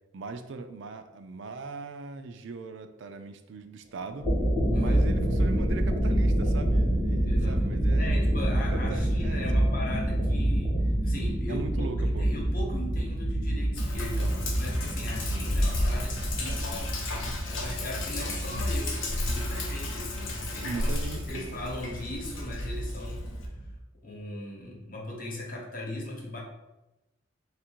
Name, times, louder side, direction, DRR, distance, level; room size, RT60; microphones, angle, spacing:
voice 1, 0.1-4.3 4.7-8.1 8.5-9.7 11.5-12.3 14.1-14.5 15.3-15.7 20.6-21.7, right 4 dB, 65° right, 9 dB, 0.4 m, -40 dB
sound 1, 4.1-23.7, right 1 dB, 15° left, 1.0 m, -28 dB
voice 2, 4.7-5.0 7.3-17.1 17.6-20.9 21.3-23.4 24.0-26.4, left 1 dB, 45° left, -2 dB, 1.0 m, -39 dB
Sink (filling or washing), 13.8-23.5, left 1 dB, 85° left, 0.8 m, -32 dB
3.2 x 2.5 x 4.4 m, 0.98 s
head